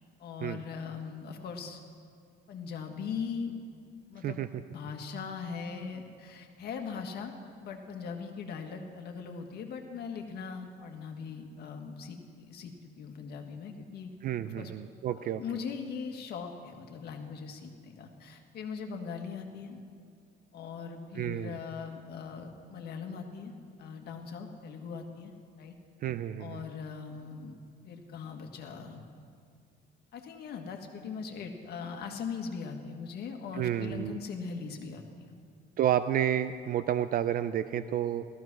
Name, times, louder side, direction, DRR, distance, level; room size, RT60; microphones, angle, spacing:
voice 1, 0.2-1.8 2.5-3.5 4.1-14.1 14.5-14.7 15.1-19.8 20.5-23.5 23.8-25.3 25.6-25.7 26.4-27.6 27.8-29.1 30.1-35.2, left 5 dB, 60° left, 4 dB, 1.7 m, -40 dB
voice 2, 14.2-15.4 21.2-21.6 26.0-26.6 33.5-34.2 35.8-38.2, right 11 dB, 50° right, 12 dB, 0.4 m, -30 dB
16.0 x 14.0 x 6.1 m, 2.2 s
cardioid pair, 170°, 19 cm